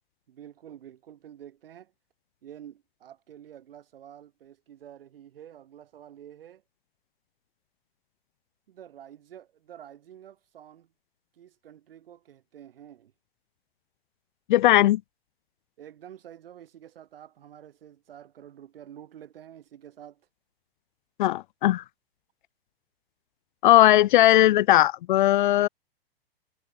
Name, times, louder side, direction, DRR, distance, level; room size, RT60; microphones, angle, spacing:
voice 1, 0.3-1.9 2.4-6.6 8.7-10.9 11.3-13.1 15.8-20.3, right 10 dB, 65° right, 6.9 m, -48 dB
voice 2, 14.5-15.0 21.2-21.8 23.6-25.7, left 14 dB, 50° left, 0.6 m, -18 dB
figure-of-eight pair, 110°, 31 cm